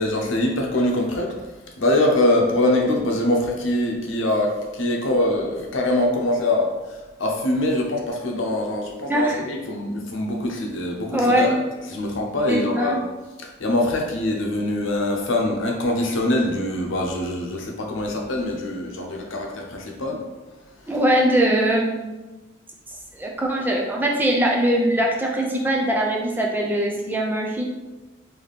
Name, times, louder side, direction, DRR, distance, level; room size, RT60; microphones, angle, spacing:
voice 1, 0.0-1.3 1.8-11.6 11.9-13.0 13.4-20.2, left 1 dB, 70° left, 0 dB, 0.7 m, -23 dB
voice 2, 9.1-9.4 11.1-11.5 12.5-13.0 20.9-22.1 23.1-27.6, right 1 dB, 10° right, -1 dB, 0.4 m, -21 dB
3.4 x 2.8 x 4.0 m, 1.1 s
head